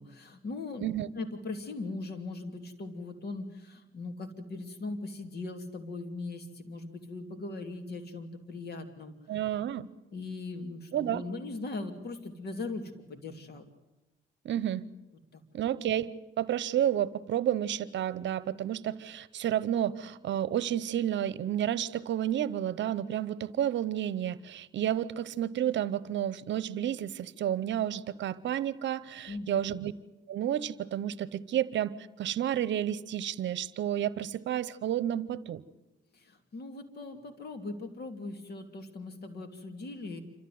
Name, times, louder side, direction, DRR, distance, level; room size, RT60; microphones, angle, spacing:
voice 1, 0.0-0.9 1.2-9.2 10.1-13.7 15.3-15.4 29.3-29.6 36.1-40.2, left 3 dB, 55° left, 6 dB, 2.8 m, -39 dB
voice 2, 9.3-9.9 10.9-11.2 14.4-14.8 15.5-16.1 16.4-29.9 30.3-35.6, right 11 dB, 65° right, 18 dB, 0.9 m, -31 dB
27.0 x 13.5 x 9.4 m, 1.0 s
cardioid pair, 90°, 20 cm